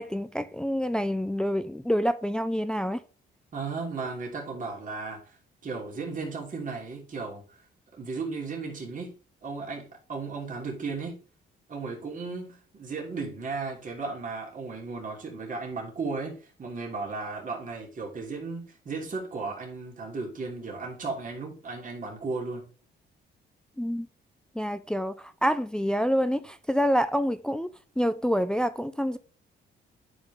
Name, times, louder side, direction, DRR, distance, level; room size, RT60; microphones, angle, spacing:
voice 1, 0.0-3.0 23.8-24.1 24.5-27.7 28.0-29.2, equal, 5° left, 0.5 m, -27 dB
voice 2, 3.5-5.4 5.6-7.6 8.0-9.1 9.4-11.2 11.7-22.6, right 4 dB, 40° right, 3.0 m, -35 dB
10.0 x 5.2 x 3.6 m
cardioid pair, 90°, 20 cm